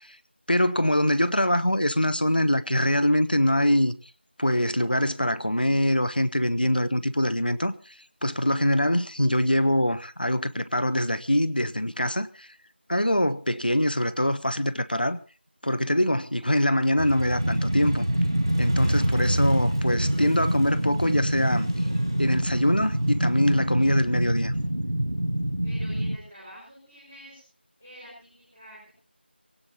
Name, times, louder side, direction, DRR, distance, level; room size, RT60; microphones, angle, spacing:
voice 1, 0.5-3.9 4.4-7.7 8.2-12.5 12.9-15.2 15.6-18.1 18.6-21.7 22.2-24.5, left 1 dB, 50° left, 1.1 m, -24 dB
Motorcycle, 17.0-24.6, equal, 20° right, 1.7 m, -31 dB
sound 1, 17.4-26.2, right 1 dB, 70° right, 1.4 m, -26 dB
voice 2, 25.6-27.4 27.8-28.9, equal, ahead, 3.4 m, -47 dB
23.5 x 17.0 x 3.0 m
figure-of-eight pair, 180°, 6 cm